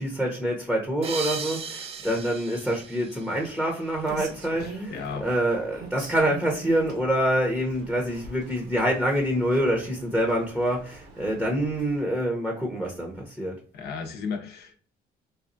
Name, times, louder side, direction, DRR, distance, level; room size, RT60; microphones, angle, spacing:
voice 1, 0.0-4.9 5.2-13.6, right 1 dB, ahead, 0 dB, 0.7 m, -26 dB
sound 1, 1.0-4.1, right 5 dB, 35° right, 0.4 m, -37 dB
Rain, 3.8-12.0, right 4 dB, 75° right, 1.0 m, -44 dB
voice 2, 4.5-5.3 13.7-14.8, left 5 dB, 75° left, 4 dB, 0.8 m, -35 dB
4.1 x 2.3 x 2.5 m, 0.43 s
cardioid pair, 110°, 17 cm